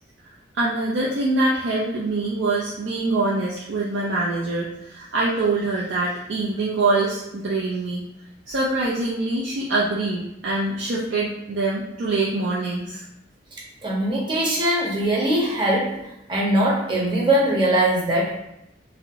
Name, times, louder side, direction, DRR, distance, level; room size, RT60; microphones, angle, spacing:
voice 1, 0.5-8.1 8.5-13.0, right 2 dB, 85° right, -6 dB, 0.4 m, -24 dB
voice 2, 13.8-16.0 16.3-18.4, right 1 dB, 25° right, -4 dB, 0.7 m, -21 dB
2.6 x 2.0 x 2.7 m, 0.83 s
head